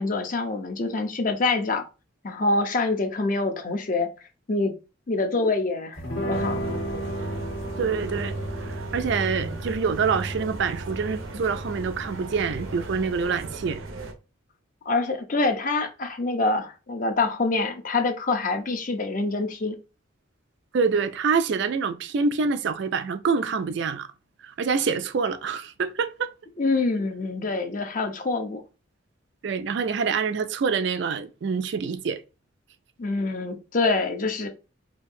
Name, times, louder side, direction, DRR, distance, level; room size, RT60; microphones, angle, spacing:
voice 1, 0.0-1.8 2.2-4.1 4.5-4.7 5.1-6.6 14.9-19.8 26.6-28.6 33.0-34.5, left 3 dB, 40° left, 0.6 m, -25 dB
sound 1, 6.0-13.7, right 1 dB, 75° left, 1.5 m, -36 dB
sound 2, 6.3-14.1, right 2 dB, 80° right, 0.7 m, -35 dB
voice 2, 7.8-8.4 8.6-13.8 20.7-24.1 24.4-26.3 29.4-32.2, right 5 dB, 55° right, 0.3 m, -26 dB
4.4 x 2.7 x 2.6 m
head